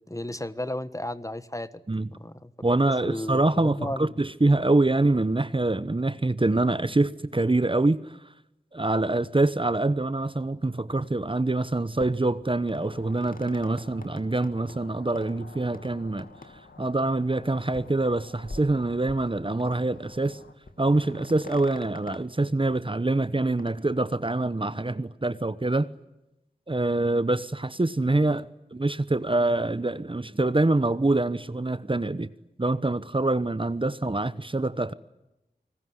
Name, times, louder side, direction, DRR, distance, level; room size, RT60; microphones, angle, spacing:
voice 1, 0.1-1.7 2.1-2.5 3.0-4.1, left 1 dB, 20° left, 1.4 m, -33 dB
voice 2, 2.6-8.2 8.7-16.3 16.8-20.4 20.8-25.9 26.7-32.3 32.6-34.9, right 2 dB, 30° right, 1.0 m, -25 dB
sound 1, 11.4-11.6 12.0-14.8 15.1-15.3 15.7-15.9 16.2-16.5 16.8-16.9 17.3-17.4 17.7-18.0 18.3-19.3 19.6-20.0 20.3-20.4 20.6-22.2 23.4-23.7, left 2 dB, 55° left, 2.7 m, -45 dB
sound 2, 12.9-20.5, left 3 dB, 85° left, 2.5 m, -51 dB
28.5 x 20.0 x 9.6 m
wide cardioid pair, 45°, 18 cm